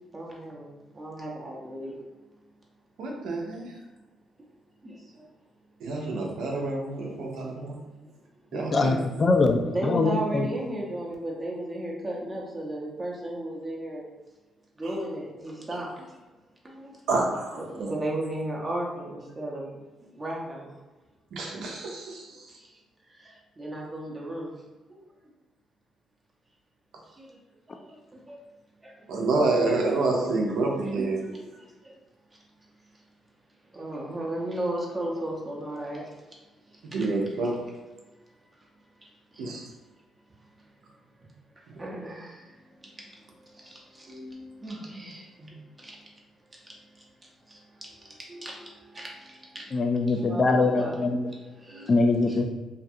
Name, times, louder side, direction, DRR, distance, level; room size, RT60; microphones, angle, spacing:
voice 1, 0.1-0.7 0.9-2.0 4.8-5.2 6.0-6.1 7.4-7.5 9.6-14.0 14.8-16.2 16.6-17.0 17.6-19.8 20.1-20.7 22.5-22.8 23.1-24.5 24.9-25.0 27.2-27.4 27.7-28.4 28.8-29.0 31.2-32.0 33.7-36.1 36.7-37.1 39.3-39.5 41.8-42.6 42.8-46.0 46.7-47.0 47.5-49.8 50.1-52.4, right 1 dB, 25° right, -3 dB, 0.5 m, -35 dB
voice 2, 3.0-3.7 5.8-7.8 8.5-9.0 17.1-17.9 21.3-22.3 29.1-31.2 36.9-37.5 39.4-39.6 41.7-41.8, right 3 dB, 80° right, -1 dB, 0.6 m, -28 dB
voice 3, 8.5-10.5 49.7-51.3 51.9-52.4, left 3 dB, 40° left, 5 dB, 0.3 m, -23 dB
2.4 x 2.3 x 2.6 m, 1.2 s
cardioid pair, 90°, 0 cm